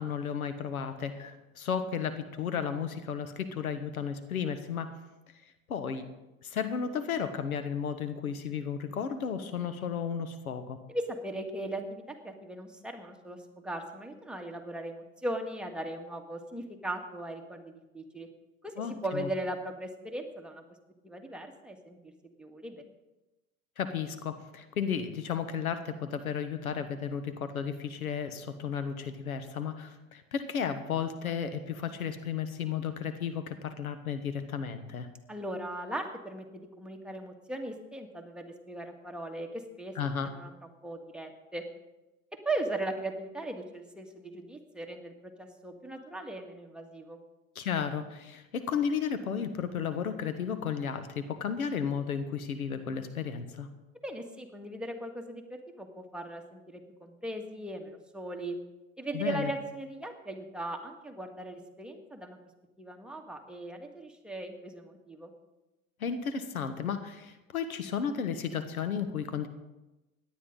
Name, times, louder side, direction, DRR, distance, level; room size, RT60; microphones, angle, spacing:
voice 1, 0.0-5.0 5.7-6.1 6.4-10.8 18.8-19.3 23.8-35.1 39.9-40.3 47.5-53.7 59.1-59.5 66.0-69.5, left 7 dB, 85° left, 10 dB, 1.2 m, -33 dB
voice 2, 10.9-18.3 18.6-20.6 21.0-22.0 22.4-22.8 35.3-39.9 40.2-40.5 40.8-41.6 42.5-47.2 54.0-58.6 59.0-62.4 62.8-65.3, right 1 dB, ahead, 2 dB, 1.8 m, -38 dB
17.5 x 11.0 x 3.9 m, 1.0 s
hypercardioid pair, 85°, 42 cm